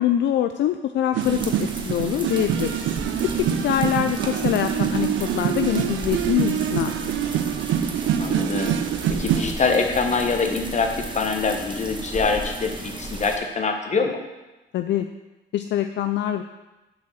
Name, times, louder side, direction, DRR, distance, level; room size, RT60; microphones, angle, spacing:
voice 1, 0.0-3.0 3.2-6.9 7.2-7.3 14.7-15.1 15.5-16.4, left 11 dB, 65° left, 7 dB, 0.4 m, -24 dB
sound 1, 1.1-9.5, right 10 dB, 75° right, 0.5 m, -25 dB
sound 2, 1.2-13.4, right 2 dB, 25° right, 1.2 m, -36 dB
sound 3, 2.8-13.1, right 1 dB, ahead, 2.3 m, -41 dB
voice 2, 3.2-3.7 8.2-8.8 9.1-14.2, left 4 dB, 35° left, 4 dB, 1.2 m, -24 dB
7.1 x 4.6 x 6.2 m, 1.1 s
cardioid pair, 90°, 20 cm